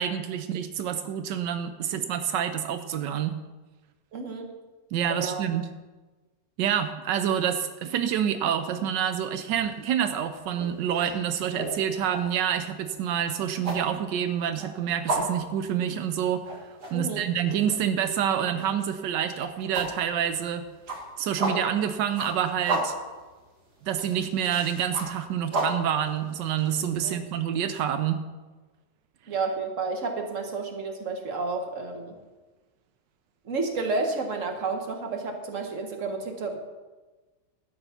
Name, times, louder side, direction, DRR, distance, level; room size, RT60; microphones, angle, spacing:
voice 1, 0.0-3.4 4.9-5.7 6.6-16.6 16.9-20.6 21.2-22.9 23.8-28.2, right 9 dB, 90° right, 9 dB, 1.4 m, -27 dB
voice 2, 4.1-4.5 5.1-5.4 16.9-17.3 27.0-27.1 29.3-32.1 33.5-36.6, right 3 dB, 45° right, 4 dB, 1.8 m, -31 dB
sound 1, 9.4-9.7 10.1-27.0, right 2 dB, 65° right, 2.6 m, -34 dB
12.0 x 8.9 x 5.8 m, 1.2 s
omnidirectional pair, 1.9 m